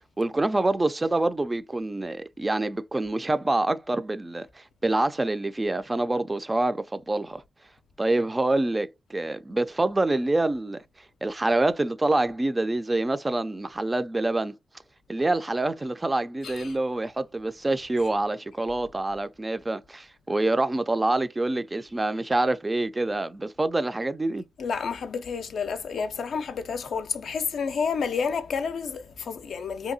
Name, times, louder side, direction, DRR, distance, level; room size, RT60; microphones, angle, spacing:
voice 1, 0.2-7.4 8.0-10.8 11.2-14.5 15.1-24.4, right 2 dB, 25° right, 0.3 m, -26 dB
voice 2, 16.4-16.8 24.6-29.9, left 5 dB, 75° left, 0.4 m, -30 dB
2.7 x 2.6 x 2.6 m
cardioid pair, 75°, 0 cm